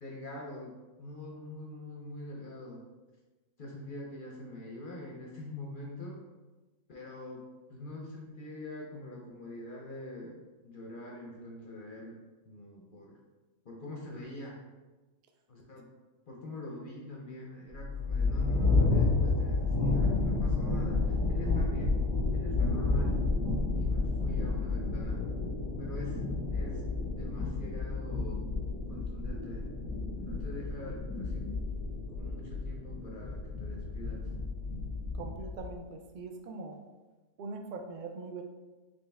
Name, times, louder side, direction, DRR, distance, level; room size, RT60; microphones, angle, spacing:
voice 1, 0.0-2.8 3.6-6.2 6.9-7.4 7.7-10.4 10.6-12.2 12.5-13.2 13.6-14.6 15.5-15.8 16.3-22.0 22.3-23.2 23.8-25.2 25.8-26.8 27.1-28.4 28.9-29.7 30.2-31.5 32.1-34.3, left 2 dB, 50° left, -1 dB, 0.7 m, -44 dB
sound 1, 17.7-35.7, left 3 dB, 15° right, 1.3 m, -31 dB
voice 2, 35.1-36.8 37.4-38.4, right 3 dB, 60° right, 4 dB, 0.5 m, -42 dB
4.3 x 3.2 x 3.4 m, 1.2 s
omnidirectional pair, 1.4 m